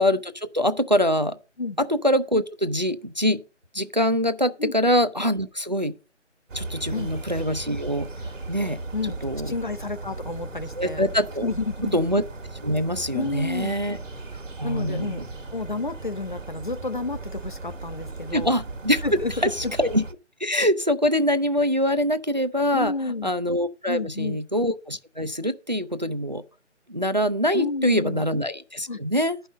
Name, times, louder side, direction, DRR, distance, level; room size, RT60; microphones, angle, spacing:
voice 1, 0.0-1.4 1.8-3.4 3.7-6.0 6.5-8.1 8.5-8.8 9.2-9.5 10.8-11.5 11.9-12.2 12.6-14.0 14.6-15.2 18.3-20.0 20.4-22.9 23.2-26.4 26.9-29.4, equal, 40° right, 0.4 m, -24 dB
sound 1, 6.5-20.1, right 3 dB, 85° right, 1.4 m, -37 dB
voice 2, 9.5-11.0 11.4-12.0 13.1-13.7 14.6-15.2 15.5-18.5 19.0-19.7 22.7-23.3 23.9-24.4 27.5-28.3 28.9-29.0, left 3 dB, 45° left, 0.5 m, -30 dB
11.0 x 5.5 x 5.1 m
figure-of-eight pair, 170°, 37 cm